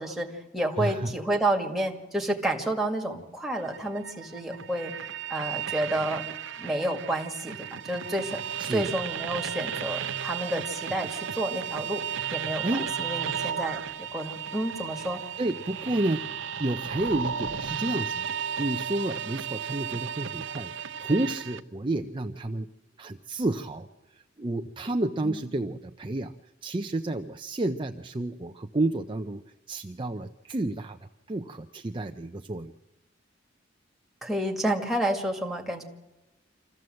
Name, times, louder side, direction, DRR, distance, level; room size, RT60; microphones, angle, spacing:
voice 1, 0.0-4.9 5.3-6.3 6.6-8.4 8.7-12.0 12.3-15.2 25.2-25.4 34.2-35.8, right 1 dB, ahead, 1 dB, 2.0 m, -30 dB
voice 2, 0.8-1.1 8.6-8.9 12.6-12.9 15.4-16.3 16.6-18.2 18.6-22.7 23.0-23.9 24.4-26.3 26.6-29.4 29.7-31.0 31.3-32.7, right 2 dB, 25° right, 6 dB, 0.6 m, -30 dB
sound 1, 3.5-21.6, right 8 dB, 80° right, 0.7 m, -34 dB
26.0 x 14.5 x 7.7 m, 1.1 s
head